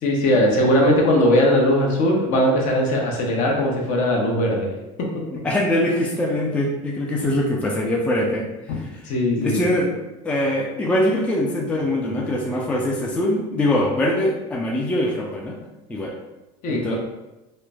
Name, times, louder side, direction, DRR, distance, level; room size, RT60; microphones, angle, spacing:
voice 1, 0.0-4.7 8.7-9.7 16.6-17.0, left 1 dB, 55° left, 0 dB, 0.7 m, -19 dB
voice 2, 5.4-9.0 9.4-9.9 10.2-15.6 15.9-16.1 16.7-17.0, left 1 dB, 10° left, -2 dB, 0.3 m, -23 dB
3.0 x 2.0 x 2.3 m, 1.0 s
supercardioid pair, 120°, 15 cm